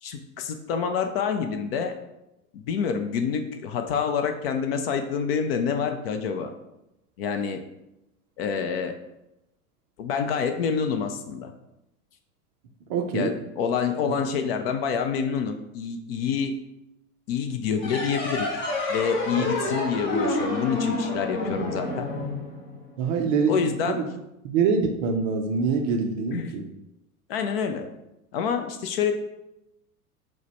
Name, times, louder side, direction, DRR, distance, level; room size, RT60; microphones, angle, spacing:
voice 1, 0.0-1.9 2.5-6.5 7.2-7.6 8.4-9.0 10.0-11.5 13.1-16.6 17.3-18.5 18.9-22.1 23.5-24.0 26.3-26.6 27.3-27.9 28.3-29.1, left 6 dB, 45° left, 6 dB, 0.4 m, -27 dB
voice 2, 12.9-13.3 14.1-14.2 19.4-19.5 23.0-24.0 24.4-26.7, right 5 dB, 30° right, 3 dB, 0.4 m, -25 dB
sound 1, 17.8-23.0, left 2 dB, 25° left, 0.9 m, -29 dB
4.5 x 2.2 x 4.4 m, 0.89 s
figure-of-eight pair, 95°, 46 cm